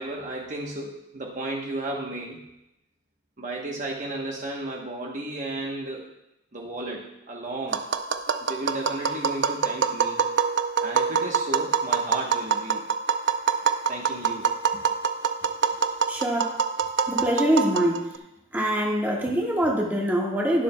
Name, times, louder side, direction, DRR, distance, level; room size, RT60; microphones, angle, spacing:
voice 1, 0.0-2.4 3.4-6.1 6.5-7.9 8.4-10.2 10.8-12.9 13.9-14.5, right 2 dB, 40° right, -1 dB, 1.0 m, -33 dB
Tap, 7.7-18.2, right 6 dB, 60° right, 0.5 m, -25 dB
voice 2, 16.1-16.6 17.1-18.2 18.5-20.6, equal, 10° right, -2 dB, 1.5 m, -24 dB
21.0 x 7.0 x 2.2 m, 0.88 s
head